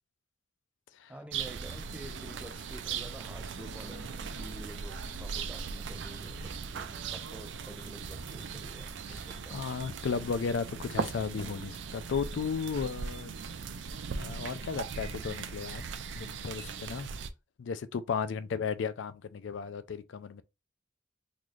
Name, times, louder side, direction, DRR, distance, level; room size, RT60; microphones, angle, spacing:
voice 1, 1.1-9.7, right 1 dB, 5° right, 0.3 m, -49 dB
sound 1, 1.3-17.3, right 5 dB, 75° right, 0.4 m, -39 dB
voice 2, 9.5-13.3 14.2-15.8 16.1-17.1 17.6-20.4, left 5 dB, 80° left, 0.4 m, -34 dB
3.9 x 2.4 x 3.1 m
head